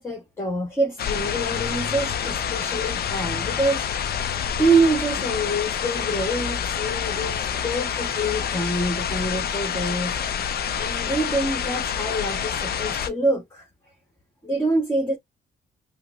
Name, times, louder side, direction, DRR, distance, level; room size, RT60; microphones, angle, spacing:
voice 1, 0.0-3.8 4.6-10.2 10.8-13.7 14.4-15.2, right 2 dB, 15° left, 1.5 m, -25 dB
sound 1, 1.0-13.1, left 8 dB, 50° left, 0.5 m, -27 dB
5.5 x 2.1 x 2.5 m
cardioid pair, 90°, 20 cm